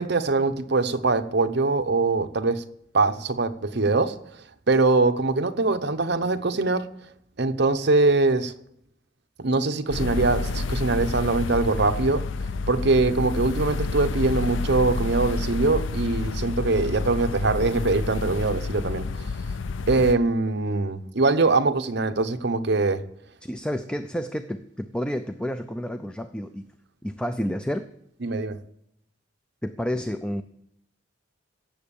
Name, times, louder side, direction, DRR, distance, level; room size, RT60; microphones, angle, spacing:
voice 1, 0.0-2.6 2.9-4.2 4.7-6.9 7.4-8.5 9.4-12.2 12.7-19.3 19.9-23.0 28.2-28.6, right 3 dB, 60° right, 8 dB, 0.9 m, -23 dB
sound 1, 9.9-20.1, left 3 dB, 70° left, 0.5 m, -29 dB
voice 2, 23.4-26.7 27.0-27.9 29.6-30.4, equal, 5° left, 9 dB, 0.5 m, -30 dB
17.0 x 7.4 x 7.1 m, 0.76 s
head